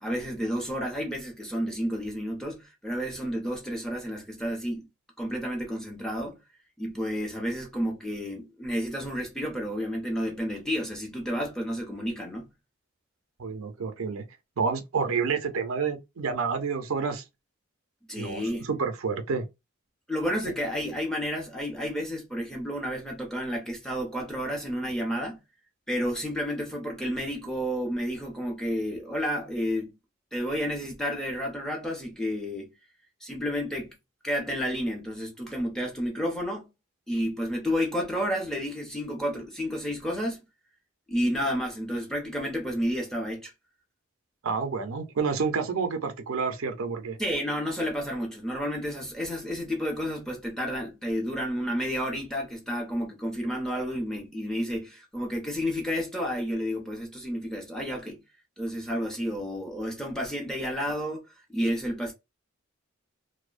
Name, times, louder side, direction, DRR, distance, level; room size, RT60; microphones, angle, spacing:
voice 1, 0.0-4.9 5.2-6.4 6.8-12.5 18.1-18.6 20.1-25.4 25.9-30.0 30.3-32.7 33.2-33.9 34.2-36.7 37.1-40.4 41.1-43.5 47.2-58.2 58.6-61.2 61.5-62.1, equal, 5° left, 0.7 m, -31 dB
voice 2, 13.4-14.2 14.6-17.2 18.2-19.5 44.4-47.2, right 5 dB, 80° right, 0.5 m, -29 dB
2.6 x 2.0 x 2.4 m
head